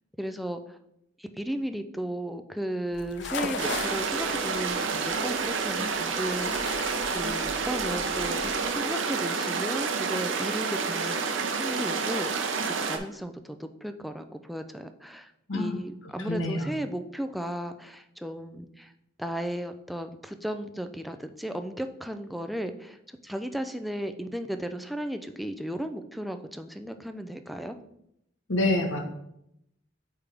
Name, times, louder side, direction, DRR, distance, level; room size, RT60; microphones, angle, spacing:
voice 1, 0.2-0.6 1.2-6.8 7.1-12.5 12.8-18.9 19.2-23.0 23.2-27.8, right 1 dB, ahead, 7 dB, 0.4 m, -35 dB
sound 1, 2.9-8.7, left 3 dB, 70° left, 0.6 m, -38 dB
sound 2, 3.6-13.0, right 5 dB, 75° right, 0.7 m, -29 dB
voice 2, 16.2-16.7 28.5-29.0, left 2 dB, 90° left, 4 dB, 1.1 m, -27 dB
8.4 x 3.5 x 3.4 m, 0.78 s
head